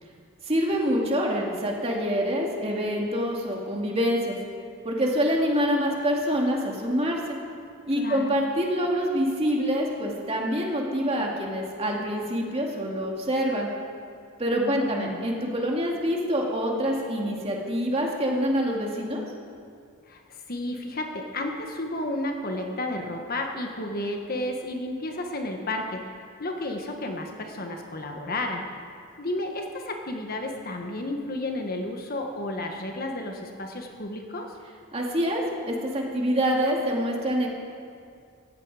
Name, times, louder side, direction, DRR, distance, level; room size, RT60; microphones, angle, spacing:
voice 1, 0.4-4.4 4.8-7.4 7.9-13.7 14.4-19.2 34.9-37.5, equal, 30° right, -1 dB, 2.4 m, -26 dB
voice 2, 7.9-8.3 14.5-15.3 20.1-28.6 29.2-34.5, left 1 dB, 45° left, 3 dB, 1.4 m, -32 dB
17.0 x 15.0 x 5.0 m, 2.3 s
head